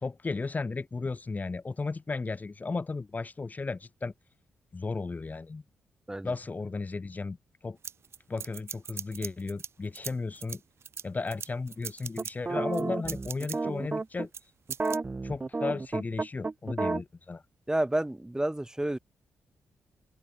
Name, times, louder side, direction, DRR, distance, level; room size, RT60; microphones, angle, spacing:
voice 1, 0.0-4.1 4.7-5.6 6.2-7.4 7.6-7.8 8.3-10.6 11.0-14.3 15.2-17.4, left 3 dB, 35° left, 1.5 m, -34 dB
sound 1, 7.8-9.7 9.9-12.3 12.7-13.6 14.3-14.4 14.7-15.0, right 7 dB, 65° right, 2.7 m, -39 dB
sound 2, 12.2-14.3 14.7-17.0, right 3 dB, 30° right, 0.9 m, -31 dB
voice 2, 17.7-19.0, right 1 dB, 15° right, 3.3 m, -30 dB
open air
supercardioid pair, 55°, 5 cm